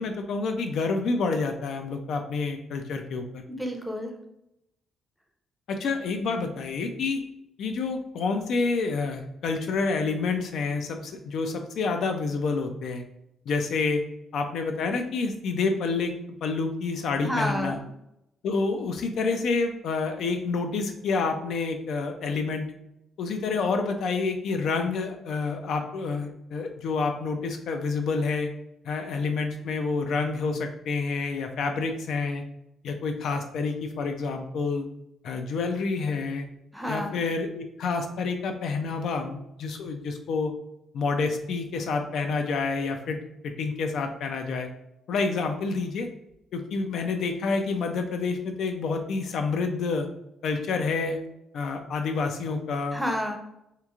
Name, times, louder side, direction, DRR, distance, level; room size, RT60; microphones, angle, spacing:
voice 1, 0.0-3.4 5.7-7.2 7.6-13.0 13.5-14.0 14.3-16.1 16.4-17.8 18.4-22.7 23.2-28.5 28.8-32.4 32.8-34.9 35.2-36.5 36.9-40.5 40.9-43.2 43.4-44.7 45.1-46.1 46.5-50.1 50.4-51.2 51.5-53.0, left 4 dB, 70° left, 5 dB, 0.3 m, -28 dB
voice 2, 3.5-4.1 17.2-17.8 36.7-37.2 52.9-53.4, equal, ahead, 2 dB, 0.5 m, -30 dB
3.0 x 2.4 x 2.3 m, 0.84 s
cardioid pair, 90°, 0 cm